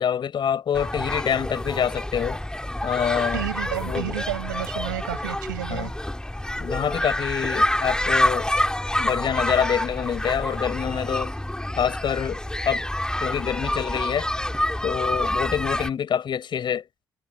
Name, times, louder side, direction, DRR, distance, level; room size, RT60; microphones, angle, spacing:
voice 1, 0.0-2.4 2.8-3.4 3.8-4.1 5.7-5.9 6.6-8.5 9.0-11.3 11.8-12.8 13.2-14.3 14.8-16.8, left 8 dB, 50° left, 5.4 m, -26 dB
sound 1, 0.7-15.9, left 1 dB, 10° left, 2.6 m, -27 dB
voice 2, 3.3-5.9, right 15 dB, 85° right, 6.2 m, -31 dB
hypercardioid pair, 45°, 10 cm